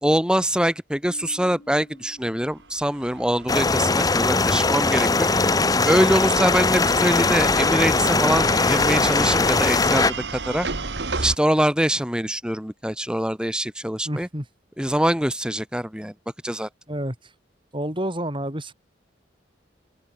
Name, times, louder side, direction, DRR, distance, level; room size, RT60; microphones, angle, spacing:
voice 1, 0.0-5.3 5.8-10.7 11.2-14.3 14.8-16.1 16.4-16.7, equal, 5° right, 1.9 m, -24 dB
Bass guitar, 1.0-3.5, left 1 dB, 80° left, 7.9 m, -50 dB
sound 1, 2.5-11.4, right 3 dB, 70° right, 1.7 m, -34 dB
sound 2, 3.5-10.1, left 3 dB, 20° left, 0.7 m, -20 dB
voice 2, 14.0-14.5 16.9-17.3 17.7-18.7, right 1 dB, 25° right, 6.5 m, -29 dB
open air
head